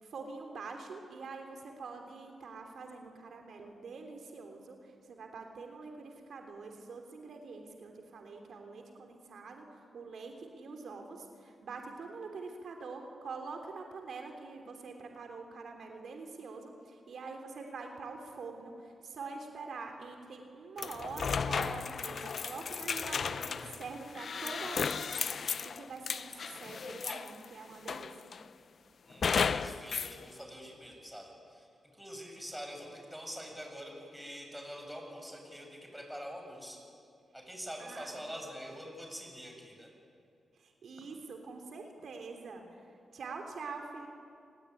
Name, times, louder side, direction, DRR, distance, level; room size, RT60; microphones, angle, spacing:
voice 1, 0.0-28.3 37.8-38.2 40.5-44.1, right 4 dB, 75° right, 4 dB, 3.2 m, -45 dB
sound 1, 20.8-27.4 27.9-28.5 29.2-30.2, left 6 dB, 60° left, 0.8 m, -34 dB
voice 2, 29.1-36.8 37.3-39.9, equal, 5° right, 2 dB, 7.9 m, -45 dB
29.0 x 20.0 x 9.9 m, 2.4 s
cardioid pair, 70°, 0 cm